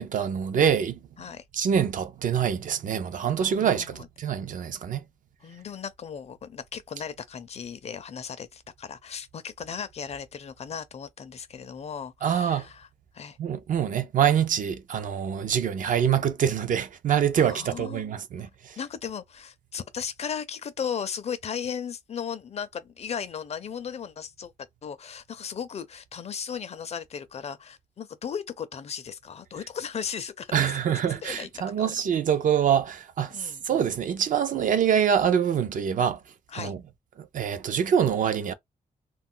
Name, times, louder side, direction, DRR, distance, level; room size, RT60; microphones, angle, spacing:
voice 1, 0.0-1.0 1.5-5.0 12.2-12.7 13.4-18.8 30.5-36.2 36.5-36.8 37.2-38.5, right 8 dB, 60° right, 0.4 m, -25 dB
voice 2, 3.3-4.1 5.4-12.9 13.1-13.4 17.4-18.0 18.4-18.5 18.8-24.5 24.8-32.0 33.3-33.6 36.5-36.7, left 7 dB, 45° left, 0.4 m, -36 dB
2.3 x 2.2 x 3.7 m
wide cardioid pair, 160°, 16 cm